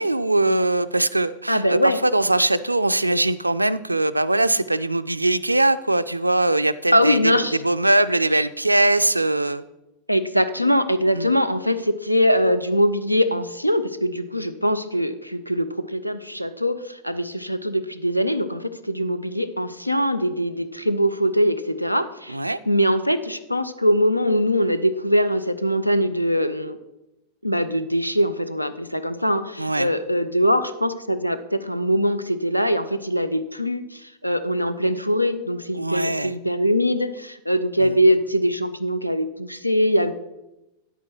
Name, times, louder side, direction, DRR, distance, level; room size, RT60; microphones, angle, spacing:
voice 1, 0.0-7.3 7.6-9.6 11.1-11.3 22.3-22.6 29.6-29.9 35.8-36.3 37.8-38.0, right 2 dB, 85° right, 15 dB, 0.3 m, -21 dB
voice 2, 1.5-2.0 6.9-7.6 10.1-26.8 27.4-40.1, equal, 90° left, 13 dB, 0.5 m, -22 dB
9.9 x 8.2 x 4.4 m, 0.94 s
figure-of-eight pair, 90°, 0 cm